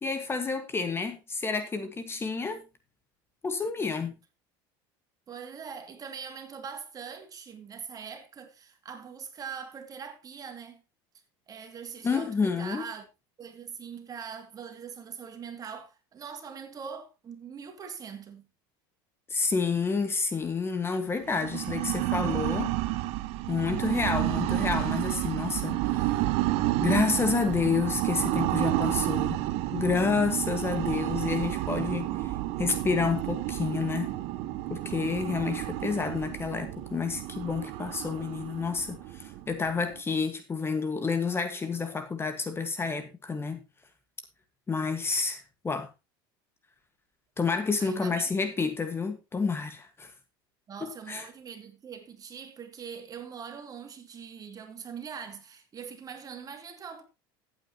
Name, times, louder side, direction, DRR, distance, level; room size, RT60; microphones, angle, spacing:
voice 1, 0.0-2.6 3.4-4.1 12.0-12.9 19.3-22.7 23.5-26.2 26.8-29.4 29.7-34.1 34.7-43.6 44.7-45.9 47.4-50.1 50.8-51.3, left 5 dB, 20° left, 1.5 m, -29 dB
voice 2, 5.3-10.8 11.5-13.1 13.4-18.5 47.8-48.2 48.6-48.7 50.7-57.0, right 7 dB, 30° right, 2.4 m, -42 dB
sound 1, 21.2-40.0, right 16 dB, 60° right, 0.9 m, -30 dB
14.5 x 8.7 x 2.9 m
supercardioid pair, 110°, 12 cm